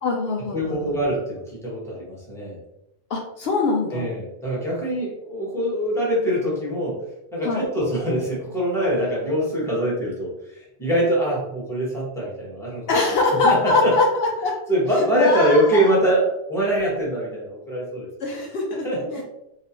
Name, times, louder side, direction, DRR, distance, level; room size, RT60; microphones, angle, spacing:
voice 1, 0.0-1.0 3.1-4.1 7.4-7.7 12.9-14.6 15.0-15.9 18.2-19.2, left 3 dB, 70° left, 0 dB, 0.8 m, -23 dB
voice 2, 0.5-2.6 3.9-7.0 7.3-12.8 13.4-13.9 14.7-18.1 18.8-19.2, right 1 dB, ahead, -6 dB, 1.1 m, -23 dB
3.1 x 2.8 x 2.9 m, 0.84 s
omnidirectional pair, 1.1 m